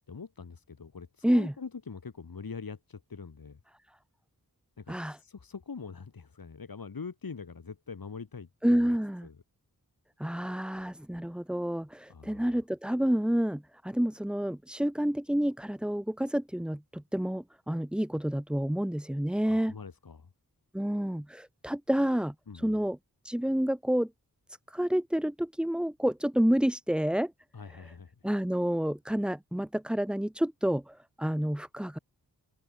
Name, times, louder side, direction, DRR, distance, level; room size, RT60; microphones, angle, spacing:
voice 1, 0.1-3.6 4.8-9.0 9.2-9.4 12.1-12.5 19.4-20.3 22.5-22.8 27.5-28.1, left 5 dB, 70° left, 2.6 m, -43 dB
voice 2, 4.9-5.2 8.6-9.3 10.2-19.7 20.7-23.0 23.2-24.1 24.7-27.3 28.2-32.0, equal, 5° right, 0.5 m, -29 dB
wide cardioid pair, 65°, 37 cm